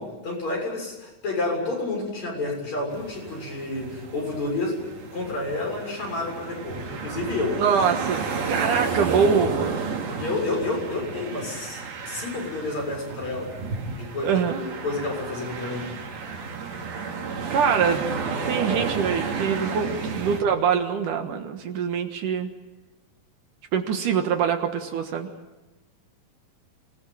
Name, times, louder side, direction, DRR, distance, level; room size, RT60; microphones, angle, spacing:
voice 1, 0.0-4.8 5.1-7.5 10.1-13.5 14.0-15.9 20.0-20.1, left 2 dB, 50° left, 0 dB, 8.1 m, -30 dB
sound 1, 2.9-20.4, right 5 dB, 90° right, 4.9 m, -32 dB
voice 2, 7.6-10.0 14.2-14.6 17.5-18.0 18.5-22.5 23.7-25.3, right 6 dB, 65° right, 5 dB, 2.9 m, -24 dB
27.0 x 20.0 x 9.0 m, 1.1 s
omnidirectional pair, 4.1 m